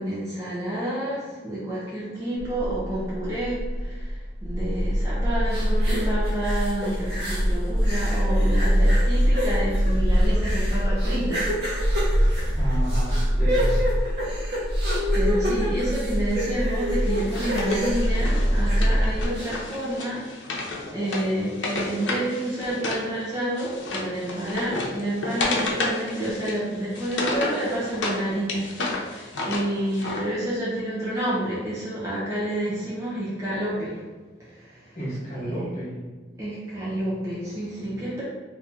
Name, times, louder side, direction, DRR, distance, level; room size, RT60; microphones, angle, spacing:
voice 1, 0.0-12.8 15.1-34.0 34.4-35.0 35.4-35.8 36.4-38.2, right 1 dB, 15° right, -9 dB, 0.7 m, -29 dB
sound 1, 2.4-19.3, equal, 85° right, 0.8 m, -24 dB
sound 2, 5.5-7.5 7.8-19.0 19.3-19.5, equal, 60° right, 0.9 m, -30 dB
voice 2, 12.5-13.8 34.9-36.0, right 1 dB, 35° left, -7 dB, 1.1 m, -32 dB
Wood, 17.0-23.1 23.3-28.2 28.5-30.2, left 2 dB, 85° left, 0.6 m, -31 dB
2.8 x 2.7 x 3.6 m, 1.3 s
head